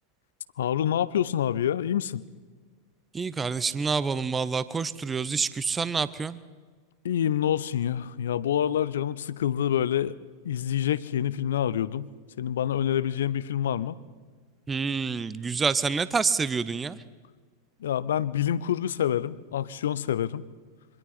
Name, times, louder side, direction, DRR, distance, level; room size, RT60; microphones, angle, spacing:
voice 1, 0.6-2.2 7.0-10.2 10.4-12.1 12.4-14.0 17.8-20.4, left 10 dB, 60° left, 19 dB, 0.6 m, -27 dB
voice 2, 3.1-6.4 14.7-17.0, right 5 dB, 15° right, 17 dB, 0.7 m, -27 dB
27.0 x 24.0 x 4.2 m, 1.5 s
figure-of-eight pair, 90°, 0 cm